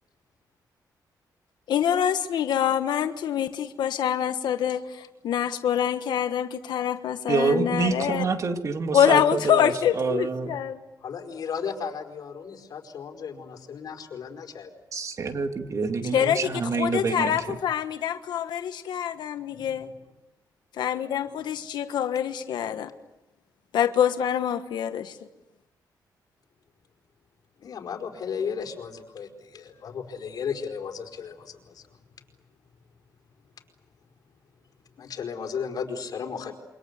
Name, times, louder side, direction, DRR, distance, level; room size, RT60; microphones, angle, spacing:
voice 1, 1.7-8.2 8.9-10.8 16.1-19.9 20.8-22.9 23.7-25.2, left 9 dB, 85° left, 9 dB, 1.4 m, -25 dB
voice 2, 7.3-10.6 14.9-17.6, right 4 dB, 45° right, 6 dB, 2.7 m, -27 dB
voice 3, 11.0-14.7 19.5-19.7 27.6-31.8 35.0-36.5, left 6 dB, 60° left, 4 dB, 4.7 m, -35 dB
28.0 x 25.5 x 8.2 m, 0.98 s
cardioid pair, 115°, 7 cm